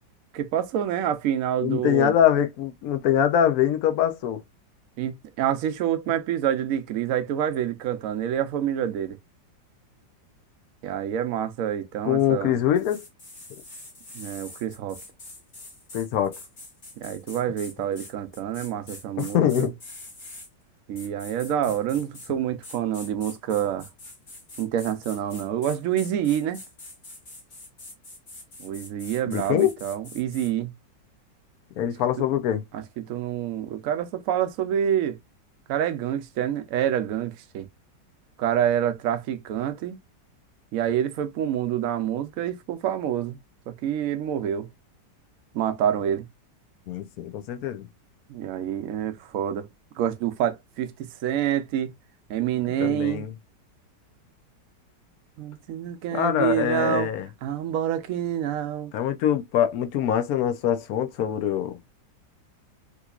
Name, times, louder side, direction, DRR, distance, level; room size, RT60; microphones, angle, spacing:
voice 1, 0.3-2.1 5.0-9.2 10.8-12.6 14.1-15.0 17.0-19.7 20.9-23.9 24.6-26.6 28.6-30.7 32.7-35.2 35.7-37.7 38.4-40.0 40.7-43.4 43.7-44.7 45.5-46.3 48.3-49.7 50.0-51.9 52.3-53.3 55.4-57.1 57.4-58.9, right 10 dB, 70° right, 0.8 m, -27 dB
voice 2, 1.6-4.4 12.0-13.0 15.9-16.4 19.2-19.7 29.3-29.7 31.8-32.6 46.9-47.9 52.8-53.3 56.1-57.3 58.9-61.8, left 10 dB, 70° left, 0.9 m, -23 dB
sound 1, 12.8-20.5 21.0-22.3 22.6-30.5, left 2 dB, 40° left, 1.7 m, -44 dB
3.7 x 3.0 x 2.3 m
omnidirectional pair, 2.0 m